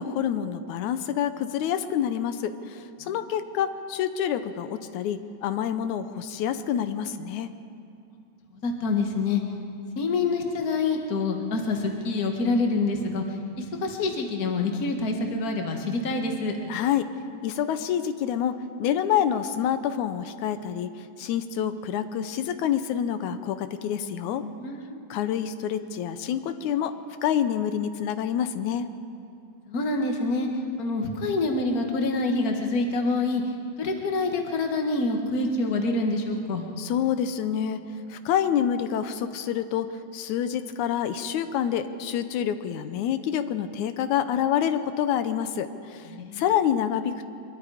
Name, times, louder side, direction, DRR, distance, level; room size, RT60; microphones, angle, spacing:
voice 1, 0.0-7.5 16.7-17.1 17.4-20.9 21.2-24.4 25.1-26.9 27.2-28.9 36.8-47.3, left 9 dB, 85° left, 10 dB, 2.2 m, -27 dB
voice 2, 8.6-9.4 10.0-13.2 13.6-16.6 24.4-25.0 29.7-30.5 30.8-33.4 33.8-36.6 46.1-46.4, left 3 dB, 35° left, 3 dB, 1.8 m, -26 dB
24.5 x 22.5 x 5.0 m, 2.5 s
omnidirectional pair, 3.3 m